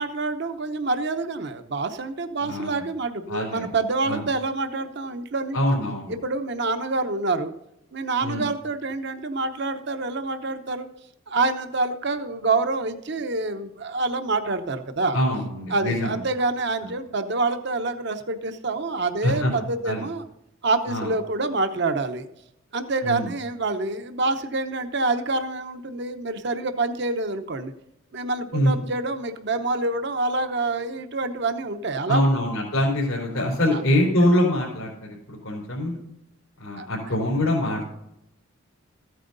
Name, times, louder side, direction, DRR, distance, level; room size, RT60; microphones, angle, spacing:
voice 1, 0.0-5.6 6.1-7.5 7.9-10.9 11.3-15.2 15.7-20.2 20.6-22.3 22.7-27.7 28.1-32.2 33.7-33.8 36.8-36.9, right 3 dB, 55° right, 8 dB, 0.8 m, -27 dB
voice 2, 3.3-3.7 4.1-4.2 5.5-6.1 8.2-8.5 15.1-16.1 19.2-19.5 19.8-20.1 20.9-21.1 23.0-23.3 28.5-28.8 32.1-36.0 36.6-37.9, left 1 dB, 90° left, -5 dB, 3.8 m, -24 dB
14.5 x 9.2 x 3.9 m, 0.82 s
head